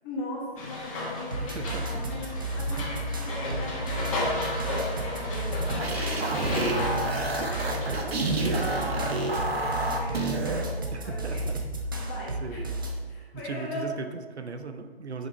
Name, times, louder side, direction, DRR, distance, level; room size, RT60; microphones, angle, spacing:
voice 1, 0.0-8.7 9.1-11.4 12.0-12.7 13.0-14.0, left 2 dB, 15° left, -4 dB, 1.5 m, -40 dB
sound 1, 0.6-9.4, left 2 dB, 30° left, 1.9 m, -34 dB
sound 2, 1.3-13.0, right 1 dB, 20° right, 0.5 m, -33 dB
voice 2, 1.4-2.1 10.9-11.6 12.4-12.6 13.4-15.3, right 4 dB, 85° right, 7 dB, 0.9 m, -38 dB
sound 3, 5.4-10.6, right 2 dB, 65° right, 1.3 m, -29 dB
6.8 x 5.7 x 4.5 m, 1.5 s
hypercardioid pair, 155°, 32 cm